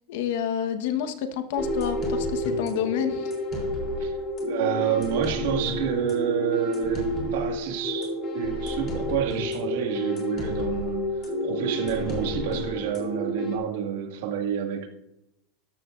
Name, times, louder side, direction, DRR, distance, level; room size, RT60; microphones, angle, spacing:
voice 1, 0.1-3.3, left 9 dB, 70° left, 1.2 m, -29 dB
sound 1, 1.5-13.6, left 1 dB, 30° left, 3.4 m, -30 dB
voice 2, 4.0-14.9, right 9 dB, 70° right, 2.0 m, -29 dB
13.0 x 12.5 x 2.6 m
supercardioid pair, 155°, 0 cm